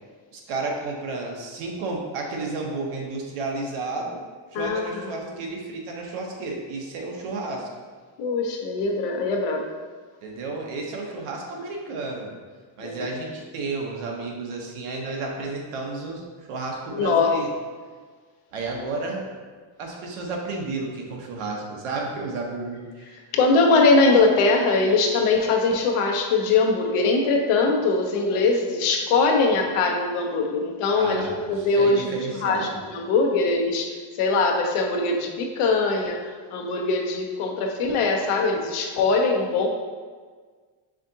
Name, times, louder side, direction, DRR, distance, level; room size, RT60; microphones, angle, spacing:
voice 1, 0.3-4.2 4.5-7.7 10.2-12.3 12.8-16.2 16.5-17.5 18.5-19.3 19.8-23.2 30.9-32.8, right 3 dB, 80° right, 0 dB, 1.0 m, -32 dB
voice 2, 4.5-5.0 8.2-9.7 12.8-13.1 16.9-17.3 23.3-32.1 32.4-39.7, left 3 dB, 85° left, 1 dB, 0.8 m, -22 dB
4.9 x 3.6 x 2.8 m, 1.5 s
cardioid pair, 175°, 49 cm